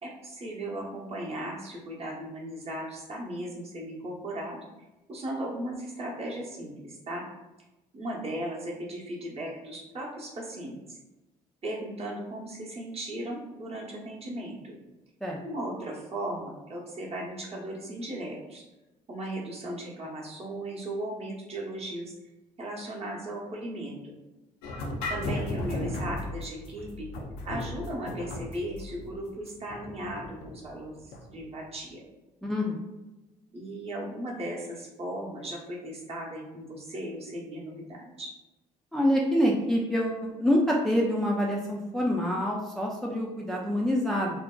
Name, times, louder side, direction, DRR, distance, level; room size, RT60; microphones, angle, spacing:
voice 1, 0.0-4.6 5.1-7.2 7.9-11.0 11.6-14.8 15.4-18.6 19.1-22.1 22.6-24.2 25.1-27.1 27.4-32.0 33.5-38.3, right 1 dB, 35° right, -3 dB, 0.8 m, -37 dB
sound 1, 24.6-31.4, left 2 dB, 80° left, 0.4 m, -36 dB
voice 2, 32.4-32.8 38.9-44.3, equal, ahead, -2 dB, 0.4 m, -26 dB
2.6 x 2.0 x 2.3 m, 1.1 s
hypercardioid pair, 55°, 17 cm